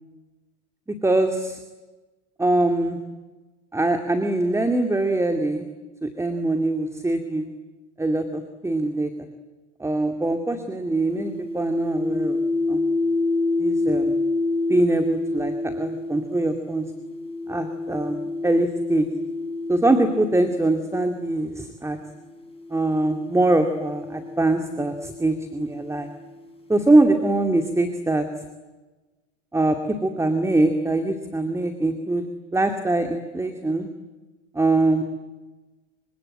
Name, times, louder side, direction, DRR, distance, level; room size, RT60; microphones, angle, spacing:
voice 1, 1.0-1.6 2.4-3.0 3.7-5.7 6.0-7.5 8.0-9.3 9.8-12.4 12.7-12.9 13.6-14.2 14.7-16.9 17.5-19.1 19.7-22.0 22.7-26.1 26.7-28.3 29.5-32.2 32.5-33.9 34.5-35.0, right 2 dB, 10° right, 6 dB, 2.4 m, -23 dB
sound 1, 11.1-21.5 22.4-26.1, left 2 dB, 15° left, 7.3 m, -28 dB
26.0 x 25.5 x 8.9 m, 1.2 s
supercardioid pair, 105°, 34 cm